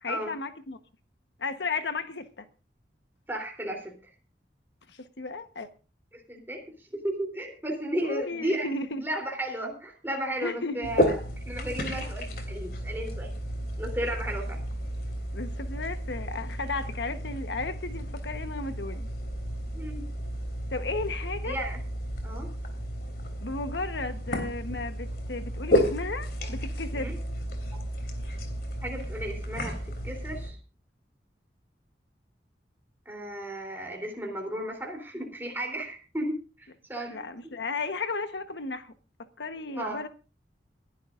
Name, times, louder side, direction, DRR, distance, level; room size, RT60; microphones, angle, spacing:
voice 1, 0.0-0.8 1.4-2.5 4.9-5.7 8.0-9.0 10.4-10.9 15.3-19.1 20.7-21.6 23.4-27.1 37.1-38.9 39.2-40.1, left 3 dB, 80° left, 1.2 m, -34 dB
voice 2, 3.3-3.9 6.1-6.6 6.9-8.7 9.0-11.1 11.5-13.3 13.8-14.6 19.7-20.0 21.4-21.8 22.2-22.5 26.9-27.2 28.8-30.6 33.0-37.2 37.4-37.5 39.7-40.0, right 1 dB, 10° right, 3.4 m, -34 dB
sound 1, 10.8-30.5, equal, 55° left, 3.1 m, -32 dB
29.0 x 11.5 x 2.5 m
head